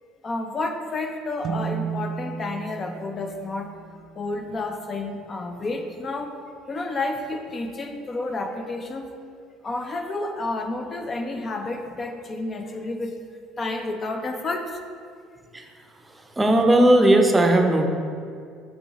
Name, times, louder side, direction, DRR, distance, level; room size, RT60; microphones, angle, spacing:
voice 1, 0.2-3.7 4.2-6.4 6.7-9.1 9.6-13.2 13.6-14.8, left 2 dB, 35° left, 5 dB, 0.5 m, -30 dB
sound 1, 1.4-5.0, right 7 dB, 50° right, 0.4 m, -34 dB
voice 2, 16.0-17.9, right 1 dB, 15° right, 4 dB, 0.6 m, -18 dB
8.0 x 3.8 x 4.1 m, 2.3 s
supercardioid pair, 85°, 0 cm